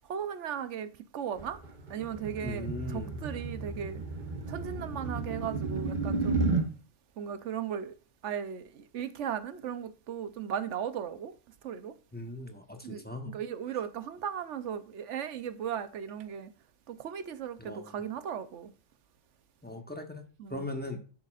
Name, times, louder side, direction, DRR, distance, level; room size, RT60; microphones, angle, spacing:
voice 1, 0.1-1.6 1.9-4.0 4.5-6.5 7.2-7.9 8.2-11.3 11.6-11.9 12.8-16.5 16.9-18.7 20.4-20.7, right 8 dB, 75° right, 1.1 m, -37 dB
sound 1, 1.4-6.7, right 3 dB, 40° right, 1.0 m, -32 dB
voice 2, 2.4-3.2 12.1-13.3 17.6-17.9 19.6-21.0, left 2 dB, 10° left, 0.9 m, -39 dB
10.0 x 6.7 x 2.4 m
omnidirectional pair, 1.3 m